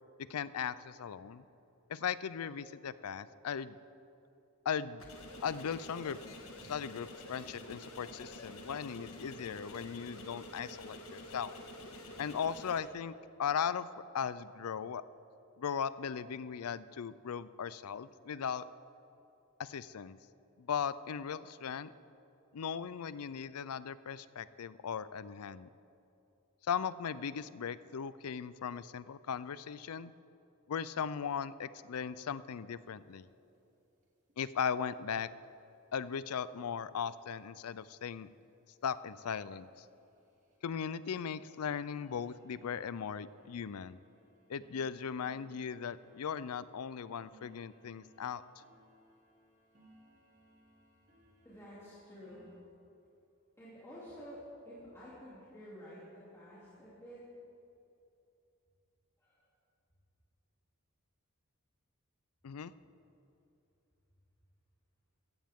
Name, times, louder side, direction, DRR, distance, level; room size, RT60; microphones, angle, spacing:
voice 1, 0.3-1.4 1.9-3.8 4.7-5.0 5.4-6.2 6.6-11.5 12.2-13.9 14.1-15.0 15.6-18.6 19.6-20.2 20.6-21.9 22.5-25.7 26.7-30.1 30.7-33.3 34.4-35.3 35.9-38.3 38.8-39.9 40.6-44.0 44.5-48.4 62.4-62.7, left 7 dB, 90° left, 16 dB, 0.5 m, -38 dB
sound 1, 5.0-12.8, left 1 dB, 70° left, 1.7 m, -49 dB
sound 2, 32.9-33.0 33.2-33.3 33.5-33.7 34.0-34.4 35.1-35.2 35.7-35.8 36.2-36.3 36.7-36.8 37.3-37.4 37.8-38.0 38.4-38.5 38.8-52.6, equal, 35° right, 2.4 m, -66 dB
voice 2, 51.4-52.5 53.6-54.4 54.6-57.2 59.2-59.4, equal, 15° left, -11 dB, 2.9 m, -51 dB
16.0 x 15.0 x 3.6 m, 2.8 s
head